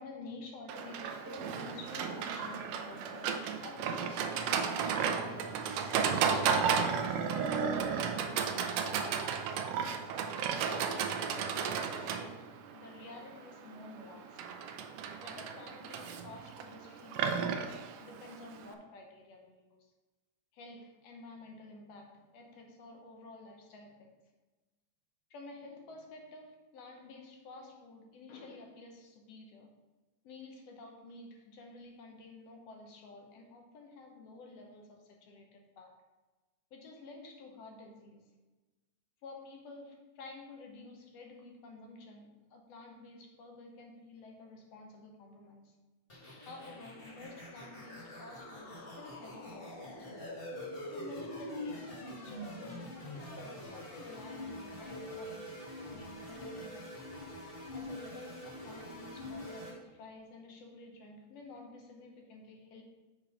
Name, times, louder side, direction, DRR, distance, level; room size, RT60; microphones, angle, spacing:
voice 1, 0.0-9.5 10.6-14.5 15.2-19.9 20.5-24.2 25.3-29.8 30.2-36.0 36.7-38.3 39.2-45.7 46.5-50.0 50.9-56.9 57.7-62.8, left 2 dB, 65° left, 2 dB, 1.8 m, -51 dB
Livestock farm animals working animals, 0.7-18.7, right 6 dB, 85° right, 1.4 m, -34 dB
sound 1, 46.1-59.7, left 1 dB, 30° left, 1.0 m, -44 dB
7.4 x 4.3 x 5.1 m, 1.2 s
omnidirectional pair, 3.5 m